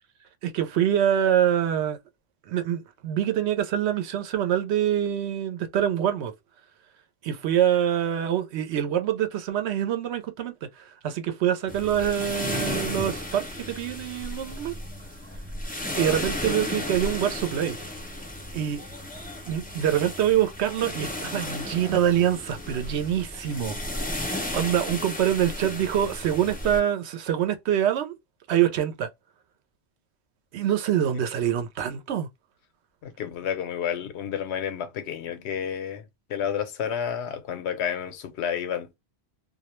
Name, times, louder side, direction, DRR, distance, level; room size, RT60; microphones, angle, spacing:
voice 1, 0.4-2.0 2.5-6.3 7.2-14.7 16.0-17.8 18.5-18.8 19.4-24.0 24.3-28.1 28.5-29.1 30.5-32.3, right 10 dB, 85° right, 0.9 m, -25 dB
sound 1, 11.7-26.8, left 1 dB, 15° left, 0.4 m, -34 dB
voice 2, 15.9-16.5 33.0-39.0, left 8 dB, 85° left, 0.9 m, -31 dB
2.3 x 2.1 x 2.9 m
omnidirectional pair, 1.1 m